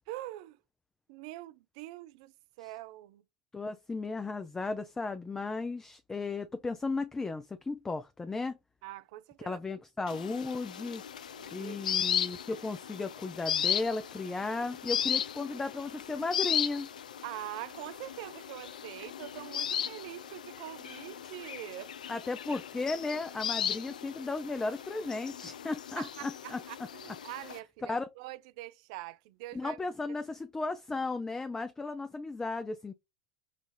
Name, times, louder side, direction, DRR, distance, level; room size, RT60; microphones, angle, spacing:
voice 1, 0.1-0.6 1.1-3.2 8.8-9.6 11.4-11.8 17.2-21.9 26.0-29.8, right 16 dB, 60° right, 0.3 m, -44 dB
voice 2, 3.5-8.6 9.4-11.0 11.5-16.9 22.1-26.6 27.1-27.2 27.8-28.1 29.5-32.9, left 3 dB, 15° left, 0.4 m, -35 dB
sound 1, 10.1-27.6, left 9 dB, 80° left, 0.4 m, -36 dB
5.7 x 2.4 x 3.2 m
hypercardioid pair, 90°, 4 cm